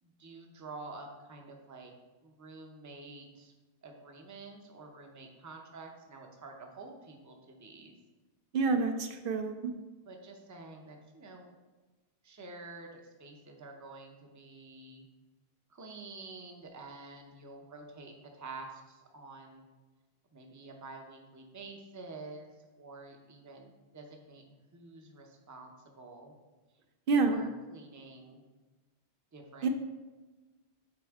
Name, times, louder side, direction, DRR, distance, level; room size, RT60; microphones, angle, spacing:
voice 1, 0.0-1.9 2.2-3.5 3.8-8.0 10.1-11.5 12.2-15.1 15.7-19.6 20.3-22.5 22.8-26.3 27.1-28.4 29.3-29.7, right 3 dB, 20° right, 2 dB, 0.6 m, -49 dB
voice 2, 8.5-9.7 27.1-27.4 29.6-29.7, right 4 dB, 60° right, 6 dB, 0.8 m, -28 dB
7.7 x 4.3 x 3.6 m, 1.2 s
omnidirectional pair, 1.1 m